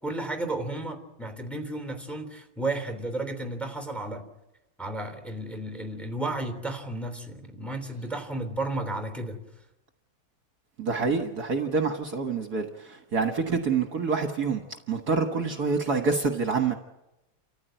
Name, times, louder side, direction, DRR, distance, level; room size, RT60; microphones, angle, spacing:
voice 1, 0.0-4.2 4.8-9.4, right 2 dB, ahead, 6 dB, 3.2 m, -33 dB
voice 2, 10.8-14.6 14.9-16.7, right 4 dB, 55° right, 5 dB, 1.8 m, -27 dB
29.5 x 14.5 x 9.2 m, 0.98 s
omnidirectional pair, 2.1 m